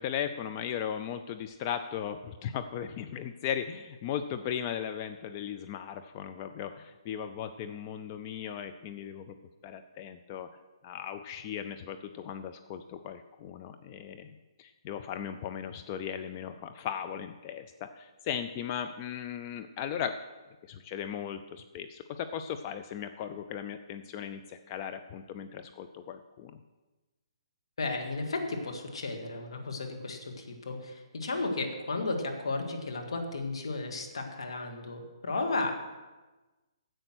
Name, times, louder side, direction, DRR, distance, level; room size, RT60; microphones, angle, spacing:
voice 1, 0.0-9.4 9.6-10.5 10.8-14.3 14.6-20.2 20.7-26.6, left 9 dB, 30° left, 9 dB, 0.5 m, -37 dB
voice 2, 27.8-35.7, left 3 dB, 70° left, 3 dB, 2.0 m, -34 dB
11.0 x 7.8 x 6.2 m, 1.2 s
hypercardioid pair, 140°, 3 cm